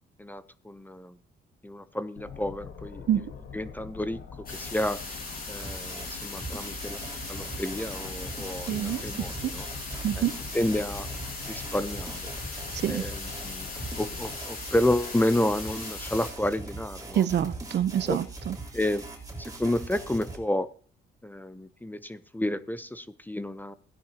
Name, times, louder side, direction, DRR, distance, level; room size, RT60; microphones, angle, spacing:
voice 1, 0.2-1.2 1.6-3.3 3.5-4.2 4.5-5.0 5.5-7.0 7.3-9.6 10.2-10.3 10.5-11.1 11.5-12.3 12.9-13.7 14.0-17.3 18.1-18.2 18.7-19.0 19.4-20.7 21.2-23.7, left 1 dB, 10° left, 14 dB, 0.7 m, -30 dB
sound 1, 2.2-14.3, left 6 dB, 70° left, 2.1 m, -44 dB
sound 2, 4.5-16.3, left 3 dB, 50° left, 6.4 m, -39 dB
sound 3, 5.6-20.4, right 3 dB, 20° right, 3.4 m, -41 dB
voice 2, 8.7-9.0 9.4-9.5 10.0-10.3 12.7-13.0 17.1-18.5, right 10 dB, 60° right, 15 dB, 0.7 m, -26 dB
17.0 x 10.5 x 2.9 m, 0.43 s
cardioid pair, 90°, 20 cm